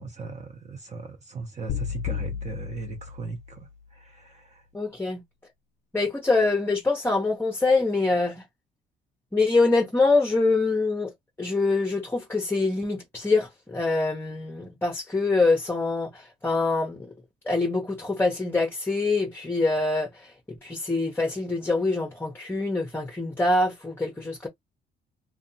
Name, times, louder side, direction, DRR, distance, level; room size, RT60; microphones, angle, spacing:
voice 1, 0.0-4.7, right 4 dB, 35° right, 0.7 m, -38 dB
sound 1, 1.7-3.9, left 8 dB, 65° left, 0.4 m, -33 dB
voice 2, 4.7-5.2 5.9-8.4 9.3-11.1 11.4-17.1 17.5-24.5, left 3 dB, 10° left, 0.6 m, -25 dB
2.6 x 2.2 x 2.6 m
cardioid pair, 90°, 20 cm